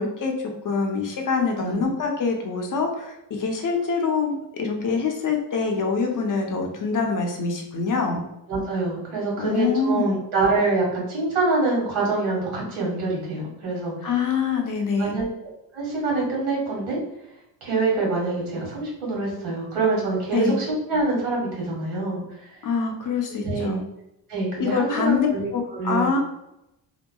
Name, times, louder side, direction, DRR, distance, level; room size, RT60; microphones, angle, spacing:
voice 1, 0.0-8.2 9.4-10.2 14.0-15.2 20.3-20.6 22.6-23.8 24.6-26.2, left 5 dB, 40° left, 2 dB, 0.7 m, -25 dB
voice 2, 8.5-14.1 15.0-15.2 15.7-17.0 17.6-22.5 23.3-23.8 24.3-26.1, right 3 dB, 80° right, -3 dB, 1.5 m, -25 dB
2.8 x 2.2 x 2.2 m, 0.86 s
supercardioid pair, 60°, 49 cm